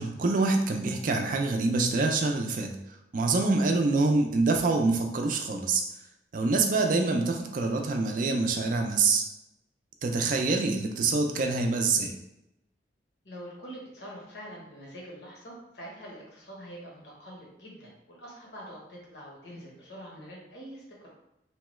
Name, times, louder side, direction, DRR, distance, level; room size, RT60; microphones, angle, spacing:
voice 1, 0.0-2.8 3.1-5.8 6.3-9.2 10.0-12.1, right 3 dB, 45° right, 3 dB, 0.4 m, -25 dB
voice 2, 13.2-21.1, equal, 70° left, -4 dB, 1.0 m, -45 dB
2.9 x 2.3 x 3.0 m, 0.88 s
head